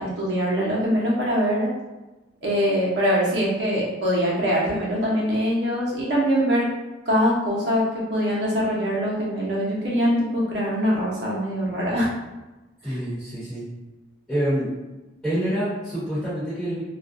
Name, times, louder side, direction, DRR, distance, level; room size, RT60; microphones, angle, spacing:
voice 1, 0.0-1.7 2.4-6.6 7.1-12.1 12.9-13.0, equal, 65° right, -5 dB, 0.8 m, -23 dB
voice 2, 12.8-13.6 14.3-14.7 15.2-16.8, equal, 5° left, -14 dB, 1.2 m, -26 dB
2.4 x 2.2 x 2.5 m, 1.1 s
head